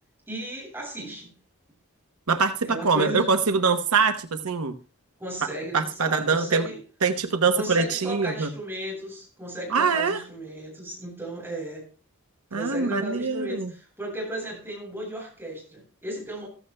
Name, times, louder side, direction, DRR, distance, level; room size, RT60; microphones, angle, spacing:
voice 1, 0.3-1.3 2.7-3.3 5.2-6.8 7.5-11.9 12.5-16.5, equal, 10° right, -3 dB, 7.9 m, -35 dB
voice 2, 2.3-4.7 5.7-6.7 7.0-8.5 9.7-10.2 12.5-13.7, right 5 dB, 85° right, 7 dB, 0.9 m, -23 dB
15.0 x 14.5 x 2.2 m, 0.37 s
head